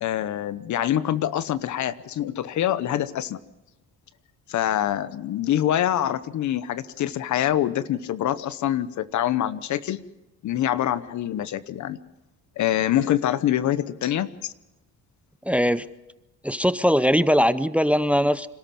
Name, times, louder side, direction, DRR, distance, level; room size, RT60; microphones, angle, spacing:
voice 1, 0.0-3.4 4.5-10.0 10.4-12.0 12.6-14.5, left 11 dB, 70° left, 16 dB, 1.0 m, -25 dB
voice 2, 15.5-15.9 16.4-18.5, equal, 5° right, 16 dB, 0.6 m, -20 dB
26.5 x 13.0 x 7.6 m, 0.99 s
cardioid pair, 90°, 30 cm